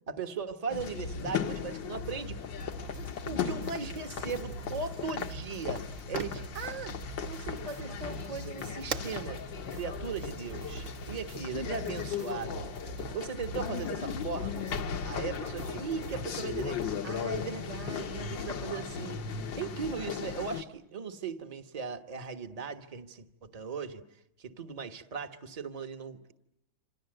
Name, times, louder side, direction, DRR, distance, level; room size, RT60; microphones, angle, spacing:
voice 1, 0.1-2.4 3.2-9.4 9.7-12.8 13.1-14.7 15.0-24.0 24.4-26.3, right 5 dB, 25° right, 7 dB, 1.2 m, -38 dB
sound 1, 0.7-20.6, left 7 dB, 75° left, 1.9 m, -37 dB
sound 2, 2.5-16.9, right 2 dB, 65° right, 3.4 m, -45 dB
Fire, 4.5-12.9, right 6 dB, 45° right, 1.4 m, -47 dB
27.5 x 27.0 x 7.9 m, 0.85 s
omnidirectional pair, 2.1 m